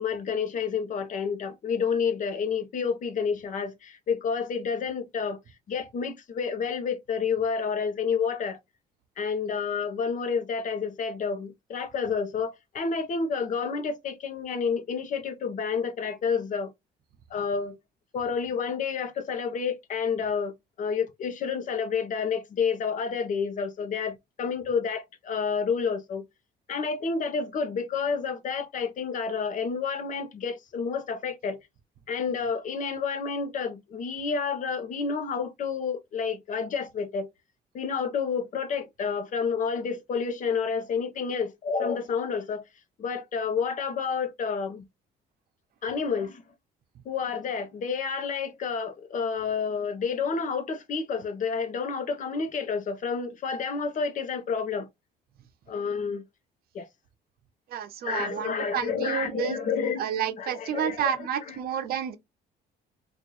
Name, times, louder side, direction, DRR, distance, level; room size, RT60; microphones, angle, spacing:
voice 1, 0.0-5.4 5.7-8.6 9.2-16.7 17.3-17.8 18.1-20.5 20.8-26.2 26.7-31.6 32.1-37.3 37.7-42.6 43.0-44.8 45.8-46.4 47.0-54.9 55.7-56.2 56.7-56.9 58.0-60.0 60.4-61.1 61.5-61.6, left 5 dB, 50° left, 0.9 m, -29 dB
voice 2, 57.7-59.6 60.0-62.2, right 9 dB, 65° right, 0.9 m, -30 dB
3.8 x 2.6 x 3.1 m
cardioid pair, 110°, 17 cm